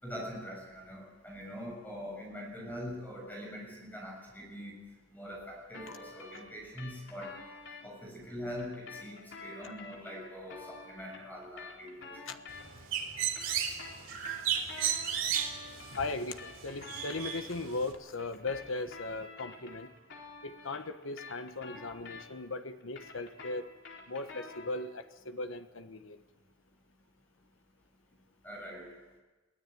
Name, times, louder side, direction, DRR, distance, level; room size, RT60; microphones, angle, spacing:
voice 1, 0.0-4.8 5.1-7.4 7.8-12.4 28.4-28.9, equal, 10° left, -1 dB, 7.0 m, -43 dB
sound 1, 5.7-7.8 8.6-12.9 13.2-17.4 18.2-22.5 22.8-24.9, left 4 dB, 60° left, 4.2 m, -49 dB
Bird, 12.5-17.9, right 8 dB, 85° right, 3.4 m, -35 dB
voice 2, 15.9-19.9 20.4-23.7 24.1-26.2, left 3 dB, 80° left, 8 dB, 1.3 m, -38 dB
23.0 x 16.5 x 9.3 m, 1.2 s
head